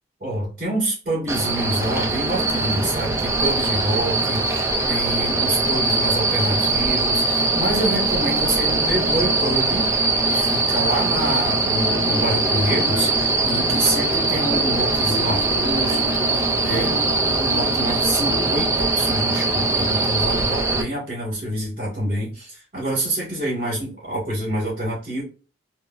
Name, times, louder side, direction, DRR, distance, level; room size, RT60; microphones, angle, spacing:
voice 1, 0.2-9.9 10.3-16.9 17.4-25.2, right 1 dB, 30° right, -5 dB, 1.7 m, -27 dB
sound 1, 1.3-20.8, right 3 dB, 15° right, 0.4 m, -21 dB
sound 2, 11.3-18.6, left 1 dB, 90° left, 0.6 m, -33 dB
3.4 x 2.3 x 2.5 m, 0.34 s
head